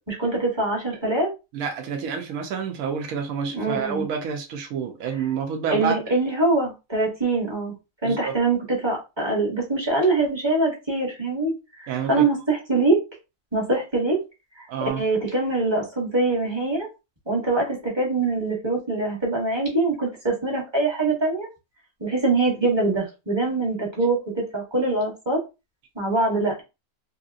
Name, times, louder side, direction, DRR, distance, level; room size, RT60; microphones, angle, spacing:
voice 1, 0.1-1.3 3.5-4.0 5.7-7.7 8.0-11.5 11.8-13.0 13.5-14.2 15.0-16.9 17.3-21.5 22.0-25.4 25.9-26.6, right 2 dB, 20° right, 1.1 m, -23 dB
voice 2, 1.5-6.0 8.0-8.3 11.9-12.2 14.7-15.0, right 6 dB, 75° right, 1.1 m, -28 dB
3.1 x 2.8 x 2.5 m
omnidirectional pair, 1.6 m